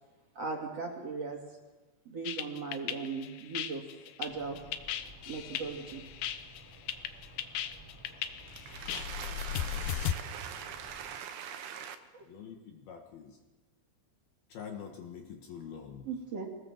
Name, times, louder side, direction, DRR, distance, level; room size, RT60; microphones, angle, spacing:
voice 1, 0.3-1.4 2.0-3.8 4.2-4.6 5.3-6.0 12.1-12.2 16.0-16.5, right 4 dB, 40° right, 2.6 m, -38 dB
sound 1, 2.3-10.1, left 11 dB, 85° left, 2.2 m, -36 dB
sound 2, 4.2-11.2, right 1 dB, 15° left, 5.2 m, -54 dB
voice 2, 8.5-12.0, right 8 dB, 75° right, 3.2 m, -42 dB
voice 3, 12.3-13.4 14.5-16.1, left 7 dB, 60° left, 2.9 m, -45 dB
25.0 x 19.5 x 7.3 m
omnidirectional pair, 5.9 m